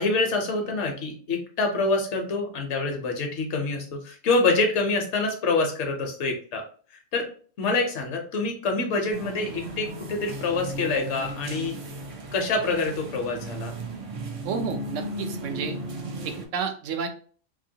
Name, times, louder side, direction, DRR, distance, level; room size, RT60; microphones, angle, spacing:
voice 1, 0.0-6.6 7.1-7.3 7.6-11.8 12.3-13.7, left 3 dB, 70° left, 3 dB, 1.0 m, -26 dB
sound 1, 9.1-16.5, right 1 dB, 60° right, 0.3 m, -36 dB
voice 2, 14.4-15.8 16.2-17.1, right 6 dB, 85° right, 6 dB, 1.0 m, -31 dB
3.0 x 2.7 x 2.7 m, 0.43 s
omnidirectional pair, 1.2 m